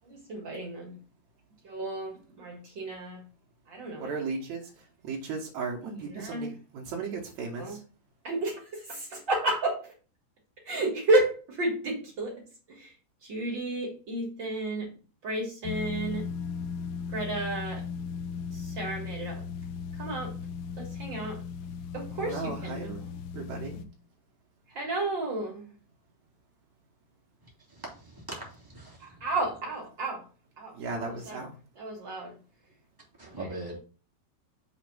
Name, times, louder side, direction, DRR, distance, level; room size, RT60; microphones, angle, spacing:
voice 1, 0.0-1.0 1.6-3.2 3.7-4.1 6.0-6.5 7.5-7.8 8.2-9.9 10.6-12.9 13.2-14.9 15.2-16.3 17.1-17.8 18.5-19.4 20.0-20.3 20.8-21.4 21.9-23.1 24.7-25.7 29.0-30.3 30.6-31.4 31.7-32.3 33.2-33.3, right 2 dB, 65° right, 1.1 m, -32 dB
voice 2, 4.0-7.8 22.2-23.0 23.3-23.8 30.7-31.6, right 4 dB, 80° right, 1.6 m, -36 dB
sound 1, 15.6-23.8, left 6 dB, 85° left, 2.2 m, -37 dB
voice 3, 27.4-29.2 33.2-33.8, right 2 dB, 10° right, 1.0 m, -42 dB
7.1 x 3.2 x 6.1 m
omnidirectional pair, 5.0 m